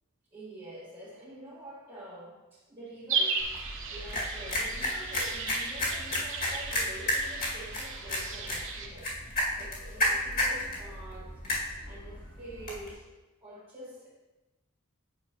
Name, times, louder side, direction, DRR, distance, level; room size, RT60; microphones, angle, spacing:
voice 1, 0.3-13.1 13.4-14.1, right 1 dB, 25° right, -11 dB, 1.6 m, -47 dB
sound 1, 3.1-8.9, right 4 dB, 60° right, 0.8 m, -35 dB
sound 2, 3.4-12.9, left 1 dB, 45° left, 1.9 m, -33 dB
8.8 x 5.9 x 2.9 m, 1.1 s
head